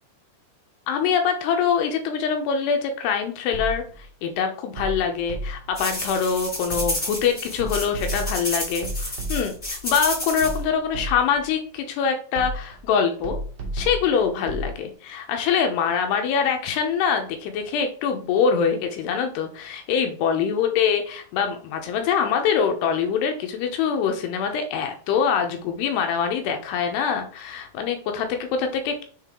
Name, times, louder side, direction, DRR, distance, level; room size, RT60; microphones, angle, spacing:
voice 1, 0.9-13.4 13.7-29.0, left 7 dB, 80° left, 5 dB, 2.6 m, -24 dB
sound 1, 3.5-4.0 4.8-5.8 6.7-7.2 7.6-9.7 10.4-11.5 12.3-12.9 13.2-14.7, right 1 dB, 85° right, 1.3 m, -32 dB
sound 2, 5.8-10.6, left 1 dB, 15° left, 2.0 m, -30 dB
7.4 x 3.7 x 3.6 m, 0.44 s
omnidirectional pair, 5.2 m